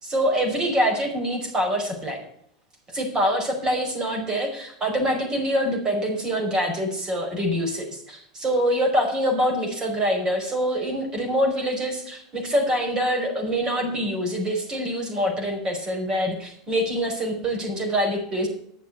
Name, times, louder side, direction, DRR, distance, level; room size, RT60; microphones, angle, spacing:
voice 1, 0.0-2.2 2.9-18.5, equal, 30° right, 2 dB, 5.1 m, -25 dB
10.5 x 7.1 x 8.1 m, 0.67 s
hypercardioid pair, 100°, 3 cm